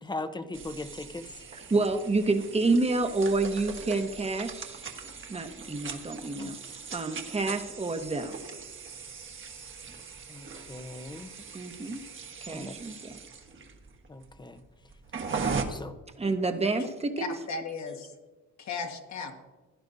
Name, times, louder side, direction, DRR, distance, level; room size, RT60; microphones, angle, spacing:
voice 1, 0.0-1.3 6.2-6.5 10.3-11.3 12.5-12.7 14.1-14.6 15.7-15.9, left 2 dB, 15° left, 9 dB, 0.8 m, -39 dB
sound 1, 0.5-15.6, right 5 dB, 40° right, 1.3 m, -40 dB
voice 2, 1.5-4.8 5.3-6.5 6.9-8.3 11.5-12.0 12.4-13.1 16.2-17.3, right 3 dB, 20° right, 6 dB, 1.1 m, -28 dB
voice 3, 17.2-18.1 18.6-19.4, left 4 dB, 65° left, 4 dB, 1.7 m, -36 dB
16.0 x 11.0 x 2.7 m, 1.2 s
cardioid pair, 90°, 30 cm